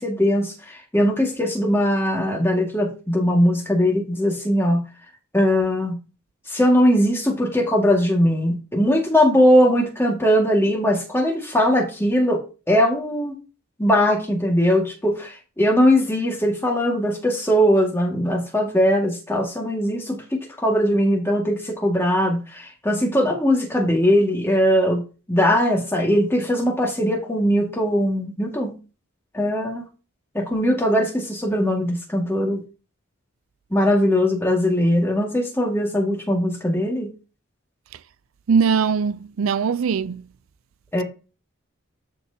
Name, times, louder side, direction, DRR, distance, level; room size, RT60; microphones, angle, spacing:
voice 1, 0.0-4.8 5.3-6.0 6.5-13.4 13.8-25.0 25.3-28.8 29.3-29.9 30.3-32.6 33.7-37.1 40.9-41.0, equal, 10° left, 2.0 m, -20 dB
voice 2, 38.5-40.3, right 6 dB, 85° right, 0.4 m, -21 dB
13.0 x 4.5 x 2.8 m
head